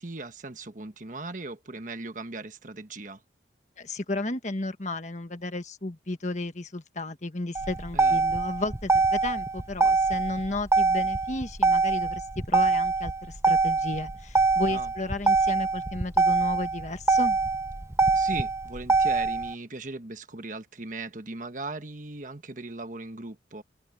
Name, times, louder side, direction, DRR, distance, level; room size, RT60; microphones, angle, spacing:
voice 1, 0.0-3.2 7.9-8.2 14.7-14.9 18.1-23.6, right 3 dB, 40° right, 1.4 m, -38 dB
voice 2, 3.8-17.4, left 2 dB, 40° left, 1.4 m, -33 dB
Motor vehicle (road), 7.5-19.5, right 3 dB, 15° right, 0.7 m, -24 dB
head